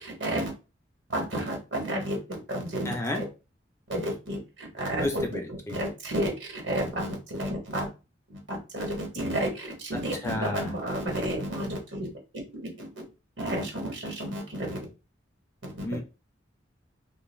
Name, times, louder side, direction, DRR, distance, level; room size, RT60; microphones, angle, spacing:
voice 1, 0.0-0.5 1.1-2.2 2.5-3.2 3.9-5.4 5.7-7.9 8.5-12.1 12.3-12.9 13.4-14.8 15.6-15.7, right 1 dB, 70° right, 0 dB, 1.1 m, -31 dB
voice 2, 2.8-3.2 5.0-5.8 10.2-10.7 15.8-16.0, left 1 dB, 15° left, 4 dB, 0.4 m, -32 dB
2.3 x 2.2 x 3.1 m, 0.30 s
head